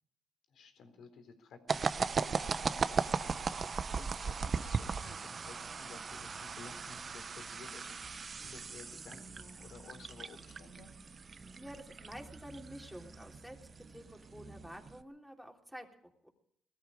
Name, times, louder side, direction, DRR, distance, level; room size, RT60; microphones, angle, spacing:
voice 1, 0.5-10.9, left 5 dB, 70° left, 7 dB, 3.9 m, -55 dB
sound 1, 1.7-15.0, right 5 dB, 40° right, 0.8 m, -38 dB
sound 2, 5.3-5.8 6.1-8.2 8.4-11.8 12.1-14.7 15.0-15.1, right 3 dB, 25° right, 1.9 m, -58 dB
voice 2, 11.5-16.3, equal, ahead, 1 dB, 3.4 m, -50 dB
20.0 x 14.0 x 5.0 m, 0.71 s
cardioid pair, 90°, 0 cm